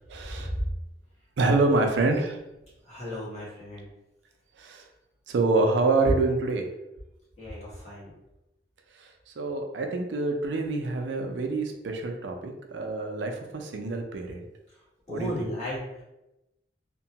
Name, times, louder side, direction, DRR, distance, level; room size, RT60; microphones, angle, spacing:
voice 1, 0.1-0.5 1.4-2.4 4.6-4.8 5.3-6.7 9.0-9.1 9.4-14.4 15.1-15.3, right 3 dB, 80° right, 4 dB, 0.5 m, -26 dB
voice 2, 2.8-3.9 7.4-8.1 15.1-16.0, equal, 40° left, -9 dB, 1.4 m, -35 dB
2.8 x 2.2 x 2.8 m, 0.93 s
head